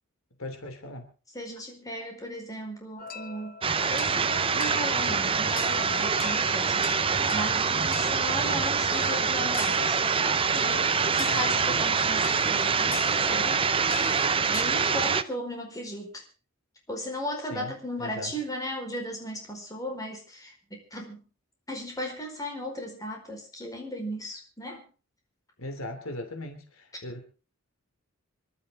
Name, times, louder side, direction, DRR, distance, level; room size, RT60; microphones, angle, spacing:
voice 1, 0.4-1.1 11.3-11.8 17.5-17.7 18.0-18.3 25.6-27.3, left 1 dB, 75° left, 6 dB, 3.0 m, -39 dB
voice 2, 1.3-7.0 7.3-10.0 10.6-13.7 14.5-16.2 16.9-21.2 21.7-24.8, equal, 15° left, 1 dB, 4.8 m, -36 dB
sound 1, 3.0-14.6, left 4 dB, 40° left, 1.0 m, -40 dB
sound 2, 3.6-15.2, right 5 dB, 25° right, 0.7 m, -25 dB
27.0 x 12.0 x 3.8 m, 0.34 s
head